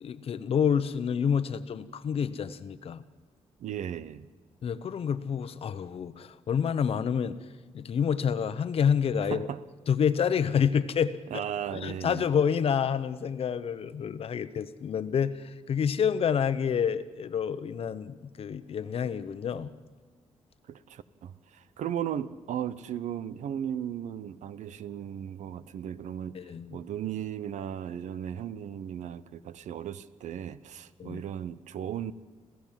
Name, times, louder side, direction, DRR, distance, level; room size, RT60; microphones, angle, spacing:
voice 1, 0.0-3.0 4.6-7.4 7.7-9.5 9.9-11.4 11.7-19.7 26.3-26.8 31.0-31.2, left 7 dB, 55° left, 1.0 m, -28 dB
voice 2, 3.6-4.3 9.3-9.6 11.3-12.2 20.7-26.4 26.7-32.1, right 9 dB, 80° right, 0.9 m, -36 dB
26.5 x 16.0 x 7.5 m
wide cardioid pair, 145°, 12 cm